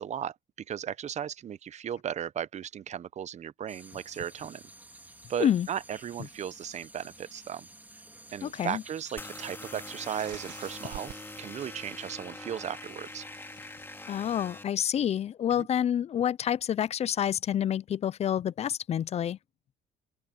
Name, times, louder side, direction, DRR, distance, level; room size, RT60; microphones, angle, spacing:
voice 1, 0.0-4.6 5.3-7.7 8.3-13.3 15.6-15.7, right 9 dB, 45° right, 0.7 m, -36 dB
sound 1, 3.7-11.1, right 2 dB, 10° right, 2.2 m, -52 dB
voice 2, 8.4-8.8 14.1-19.4, left 9 dB, 40° left, 0.4 m, -28 dB
sound 2, 9.2-14.6, left 2 dB, 15° left, 2.3 m, -44 dB
sound 3, 10.2-15.0, right 16 dB, 90° right, 1.4 m, -52 dB
open air
cardioid pair, 110°, 17 cm